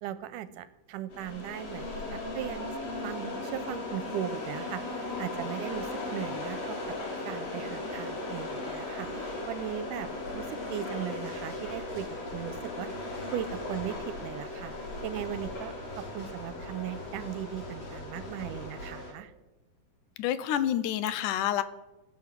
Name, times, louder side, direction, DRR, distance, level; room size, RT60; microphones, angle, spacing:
voice 1, 0.0-2.7 3.0-6.8 7.3-13.0 13.3-14.7 15.0-19.3, right 11 dB, 85° right, 14 dB, 2.2 m, -38 dB
sound 1, 1.1-19.1, left 2 dB, 50° left, 4.1 m, -37 dB
voice 2, 20.2-21.6, left 11 dB, 80° left, 14 dB, 2.2 m, -28 dB
16.0 x 6.1 x 7.5 m, 1.0 s
omnidirectional pair, 3.7 m